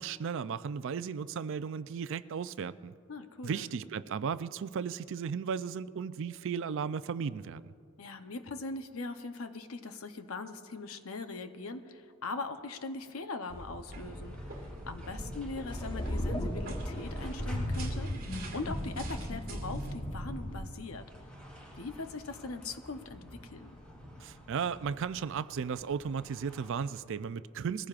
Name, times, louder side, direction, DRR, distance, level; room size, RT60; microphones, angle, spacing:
voice 1, 0.0-2.9 3.4-7.6 24.2-27.9, right 6 dB, 60° right, 0.4 m, -35 dB
voice 2, 3.1-3.7 8.0-18.1 18.5-21.0 21.8-23.7, left 3 dB, 75° left, 0.8 m, -41 dB
sound 1, 13.5-19.9, right 1 dB, 45° right, 2.5 m, -45 dB
sound 2, 13.9-26.9, equal, 5° left, 3.1 m, -48 dB
sound 3, 15.7-20.7, equal, 20° left, 1.0 m, -36 dB
21.5 x 15.0 x 2.5 m
head